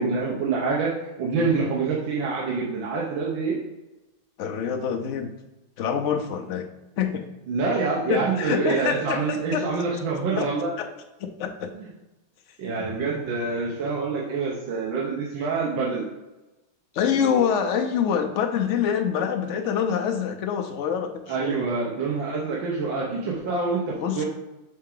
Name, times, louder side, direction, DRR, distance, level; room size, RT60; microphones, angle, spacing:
voice 1, 0.0-3.6 7.5-10.7 11.8-11.9 12.6-16.1 21.3-24.3, right 4 dB, 90° right, -4 dB, 1.8 m, -26 dB
voice 2, 1.3-1.7 4.4-5.3 5.8-6.7 7.0-7.3 8.1-9.7 10.4-10.5 10.8-10.9 11.4-11.7 16.9-21.7 24.0-24.2, left 7 dB, 75° left, 5 dB, 0.6 m, -26 dB
6.4 x 4.5 x 3.8 m, 1.0 s
omnidirectional pair, 2.0 m